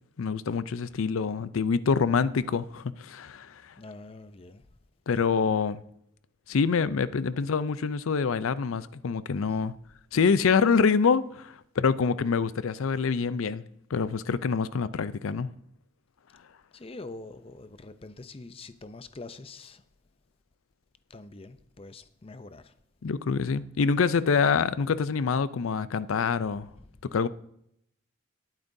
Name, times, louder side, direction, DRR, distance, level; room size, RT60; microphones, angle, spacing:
voice 1, 0.2-3.7 5.1-5.8 6.5-9.7 10.1-13.6 13.9-15.5 23.0-26.7 27.1-27.3, left 5 dB, 85° left, 0.5 m, -26 dB
voice 2, 3.8-4.7 5.1-5.3 16.7-19.8 21.1-22.7, left 3 dB, 30° left, 0.5 m, -45 dB
18.5 x 9.0 x 2.7 m
head